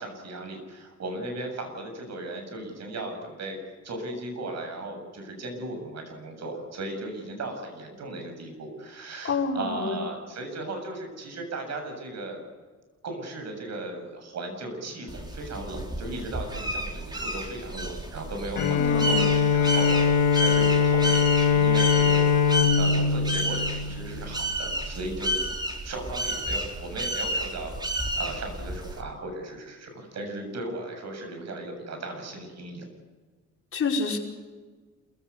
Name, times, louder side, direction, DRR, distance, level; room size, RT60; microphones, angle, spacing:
voice 1, 0.0-3.6 3.8-12.5 13.0-20.0 20.4-22.2 22.8-32.8, right 2 dB, 60° right, 5 dB, 7.4 m, -36 dB
voice 2, 9.2-10.0 18.8-19.3 33.7-34.2, left 4 dB, 45° left, 0 dB, 5.2 m, -28 dB
sound 1, 15.1-29.0, right 1 dB, 15° right, 3.8 m, -31 dB
Bowed string instrument, 18.6-24.4, left 6 dB, 90° left, 2.0 m, -22 dB
27.0 x 16.0 x 8.3 m, 1.4 s
cardioid pair, 90°, 30 cm